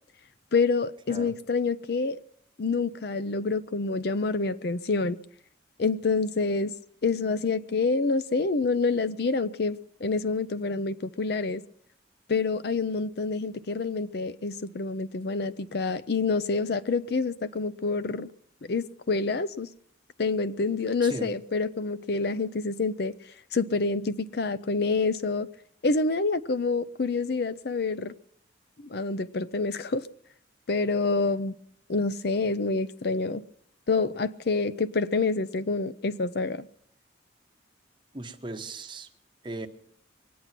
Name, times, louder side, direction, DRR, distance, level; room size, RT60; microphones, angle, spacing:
voice 1, 0.5-2.2 2.6-5.2 5.8-6.7 7.0-11.6 12.3-18.3 18.6-19.7 20.2-23.1 23.5-25.5 25.8-28.1 28.8-30.1 30.7-31.6 31.9-33.4 33.9-36.6, left 3 dB, 55° left, 0.5 m, -27 dB
voice 2, 38.1-39.1 39.4-39.7, right 2 dB, 25° right, 1.1 m, -37 dB
23.0 x 9.4 x 5.9 m
head